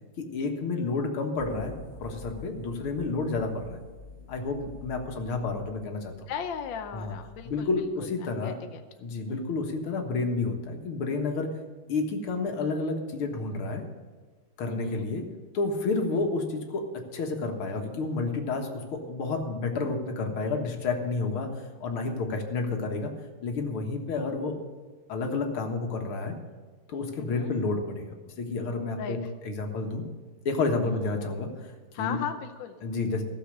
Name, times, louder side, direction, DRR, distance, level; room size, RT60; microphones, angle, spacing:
voice 1, 0.2-1.7 2.0-3.8 4.3-6.1 6.9-7.1 7.5-8.5 9.0-11.5 11.9-13.8 14.6-15.2 15.5-21.5 21.8-23.1 23.4-24.6 25.1-26.4 26.9-30.0 30.5-31.7 32.0-32.2 32.8-33.2, left 3 dB, 85° left, 3 dB, 2.3 m, -30 dB
sound 1, 1.4-8.2, left 3 dB, 45° left, 1.0 m, -48 dB
voice 2, 6.3-7.8 8.2-8.8 9.3-9.4 14.7-15.1 16.1-16.2 27.2-27.5 29.0-29.3 30.8-31.3 31.9-32.8, left 8 dB, 70° left, 7 dB, 1.4 m, -37 dB
15.0 x 7.2 x 6.5 m, 1.4 s
omnidirectional pair, 2.3 m